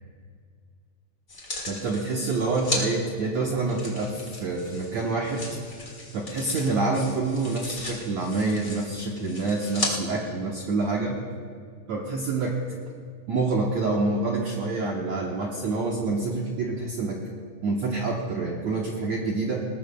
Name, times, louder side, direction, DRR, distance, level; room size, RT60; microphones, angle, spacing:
sound 1, 1.3-2.8 3.7-9.9 10.6-10.7, left 2 dB, 85° left, 0.6 m, -36 dB
voice 1, 1.7-5.4 6.1-11.2 11.9-12.6 13.3-17.2 17.6-19.6, right 3 dB, 75° right, -1 dB, 1.6 m, -27 dB
19.5 x 19.5 x 2.3 m, 2.1 s
omnidirectional pair, 4.8 m